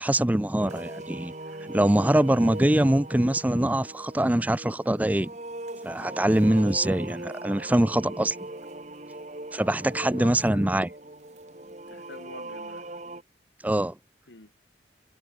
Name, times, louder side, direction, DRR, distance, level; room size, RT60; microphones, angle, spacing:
voice 1, 0.0-1.3 1.6-5.3 5.8-8.4 9.5-10.9 13.6-14.0, right 1 dB, 10° right, 0.4 m, -23 dB
sound 1, 0.6-13.2, right 2 dB, 40° right, 2.1 m, -40 dB
voice 2, 10.2-10.7 11.8-13.0 14.3-14.5, left 3 dB, 90° left, 1.9 m, -47 dB
head